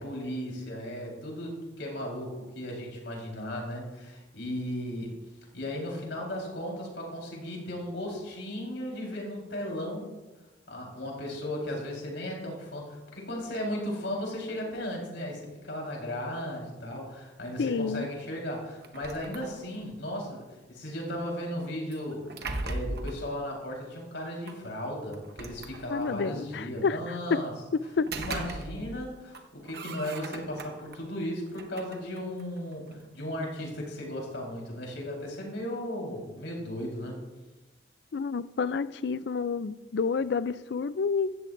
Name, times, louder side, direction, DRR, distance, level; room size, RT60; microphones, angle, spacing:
voice 1, 0.0-5.1 5.5-10.1 10.7-20.4 20.7-27.5 28.1-37.2, equal, 80° left, 4.2 m, -36 dB
voice 2, 17.6-18.1 25.9-27.4 28.0-28.1 38.1-41.3, left 5 dB, 65° left, 0.4 m, -29 dB
sound 1, 18.8-19.9 21.9-23.2 24.5-24.6 25.1-26.2 27.8-29.0 29.3-31.0 31.5-33.1, right 2 dB, 60° right, 1.1 m, -39 dB
16.0 x 13.5 x 2.6 m
head